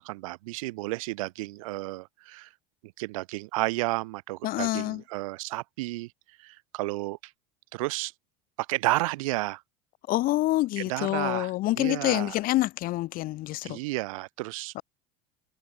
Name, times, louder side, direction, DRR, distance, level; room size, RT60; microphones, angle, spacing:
voice 1, 0.0-2.5 3.0-6.1 6.4-7.3 7.7-8.1 8.7-9.6 10.8-11.5 11.8-12.3 13.6-14.7, right 21 dB, 80° right, 3.0 m, -32 dB
voice 2, 4.4-5.0 10.1-13.8 14.7-14.8, left 17 dB, 60° left, 2.7 m, -27 dB
supercardioid pair, 100°, 17 cm